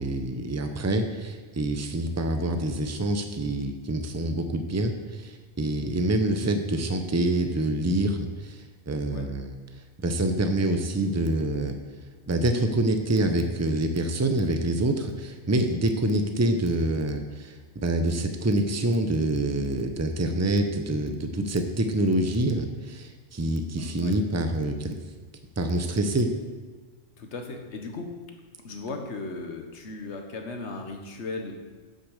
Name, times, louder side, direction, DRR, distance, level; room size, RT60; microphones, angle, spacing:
voice 1, 0.0-9.5 10.0-11.8 12.3-17.6 17.8-25.0 25.6-26.3, right 1 dB, 20° right, 6 dB, 0.5 m, -26 dB
voice 2, 23.8-24.1 27.2-28.1 28.6-31.5, left 3 dB, 60° left, 4 dB, 1.4 m, -36 dB
8.4 x 6.6 x 6.5 m, 1.5 s
omnidirectional pair, 1.3 m